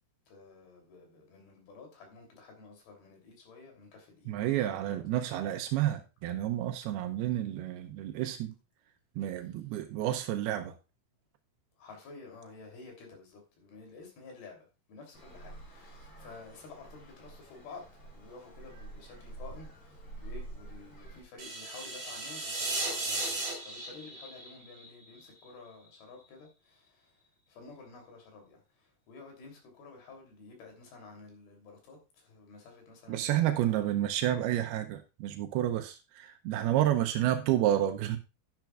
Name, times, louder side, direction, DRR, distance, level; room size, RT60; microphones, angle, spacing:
voice 1, 0.3-4.3 11.8-14.6 14.9-17.8 18.1-26.8 27.5-28.6 29.1-33.7 36.6-37.0, left 4 dB, 75° left, 5.0 m, -51 dB
voice 2, 4.3-8.6 9.2-10.8 33.1-38.2, right 12 dB, 90° right, 2.7 m, -30 dB
Traffic noise roadway noise, 15.1-21.2, right 2 dB, 40° left, 7.3 m, -47 dB
sound 1, 21.4-25.5, right 2 dB, 45° right, 4.8 m, -36 dB
11.5 x 10.5 x 2.4 m
omnidirectional pair, 4.5 m